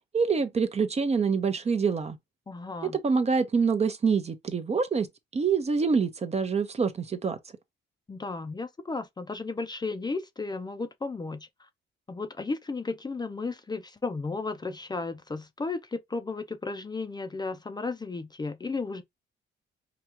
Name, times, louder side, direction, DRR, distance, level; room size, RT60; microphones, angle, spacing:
voice 1, 0.1-2.2 2.9-5.1 5.3-7.4, right 5 dB, 30° right, 0.8 m, -26 dB
voice 2, 2.5-3.0 8.1-11.5 12.1-19.0, left 3 dB, 20° left, 0.6 m, -34 dB
4.9 x 2.3 x 2.9 m
cardioid pair, 90°, 20 cm